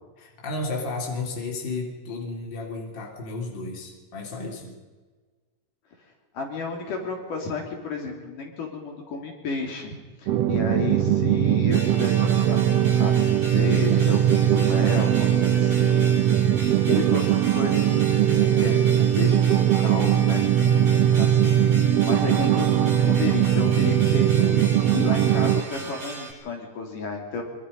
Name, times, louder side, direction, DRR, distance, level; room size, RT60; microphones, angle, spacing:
voice 1, 0.2-4.7, left 3 dB, 35° left, 0 dB, 3.9 m, -33 dB
voice 2, 6.3-16.1 16.6-18.8 19.2-20.4 21.2-21.6 22.0-27.4, left 4 dB, 70° left, 1 dB, 4.8 m, -32 dB
sound 1, 10.3-25.6, right 10 dB, 90° right, 1.3 m, -20 dB
sound 2, 11.7-26.3, right 1 dB, 70° right, 6.6 m, -38 dB
25.0 x 24.0 x 5.5 m, 1.4 s
omnidirectional pair, 3.8 m